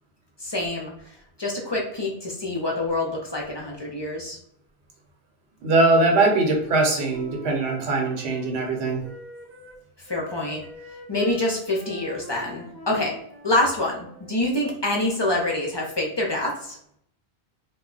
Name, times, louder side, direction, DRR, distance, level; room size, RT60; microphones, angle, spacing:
voice 1, 0.4-4.4 10.0-10.6 11.1-13.2 13.4-16.8, left 1 dB, 35° left, -2 dB, 0.5 m, -26 dB
voice 2, 5.6-9.0, right 2 dB, 80° right, 1 dB, 1.1 m, -21 dB
Wind instrument woodwind instrument, 6.1-9.8 10.1-14.4, right 1 dB, 15° right, 0.6 m, -44 dB
2.2 x 2.2 x 3.7 m, 0.68 s
omnidirectional pair, 1.1 m